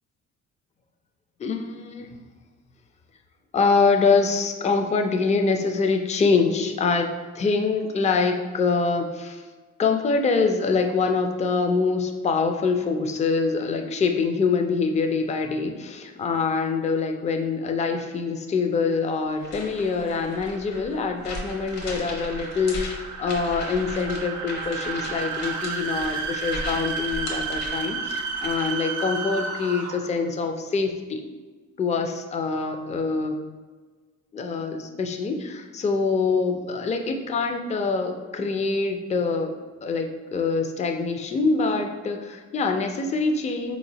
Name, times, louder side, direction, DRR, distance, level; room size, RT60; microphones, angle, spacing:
voice 1, 1.4-2.1 3.5-9.4 9.8-31.2 31.8-33.4 34.3-39.5 39.8-43.8, left 4 dB, 25° left, 5 dB, 0.4 m, -25 dB
sound 1, 19.3-28.9, left 1 dB, 65° left, 1.0 m, -37 dB
sound 2, 19.6-30.2, right 5 dB, 80° right, 0.5 m, -33 dB
3.9 x 2.9 x 2.8 m, 1.4 s
cardioid pair, 90°, 30 cm